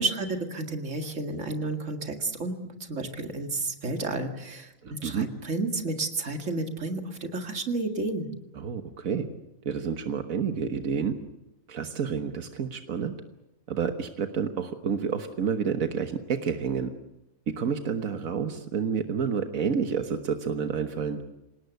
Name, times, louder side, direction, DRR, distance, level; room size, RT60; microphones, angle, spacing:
voice 1, 0.0-8.3, right 2 dB, 65° right, 5 dB, 2.4 m, -31 dB
voice 2, 4.8-5.3 8.5-9.3 9.6-11.2 11.7-13.1 13.7-16.9 17.5-21.2, right 6 dB, 85° right, 7 dB, 1.7 m, -29 dB
27.0 x 18.5 x 8.1 m, 0.92 s
omnidirectional pair, 1.4 m